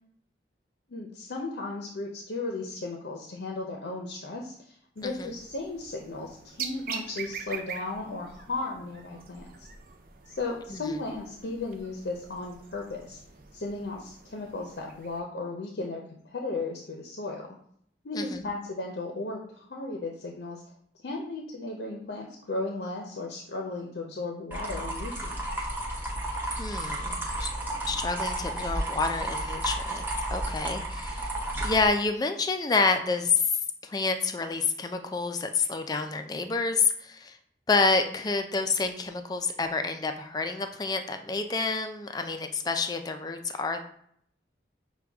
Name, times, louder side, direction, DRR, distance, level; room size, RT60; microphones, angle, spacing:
voice 1, 0.9-9.7 10.3-13.2 13.5-17.5 18.0-20.6 21.0-25.6, left 3 dB, 75° left, 0 dB, 0.6 m, -35 dB
sound 1, 5.0-15.2, right 6 dB, 50° right, 0.5 m, -44 dB
voice 2, 18.1-18.5 26.6-27.5 27.9-31.3 31.6-33.5 33.8-37.4 37.7-43.8, left 4 dB, 20° left, 7 dB, 0.3 m, -28 dB
sound 2, 24.5-31.9, right 1 dB, 10° right, 0.8 m, -32 dB
6.3 x 2.2 x 3.4 m, 0.67 s
head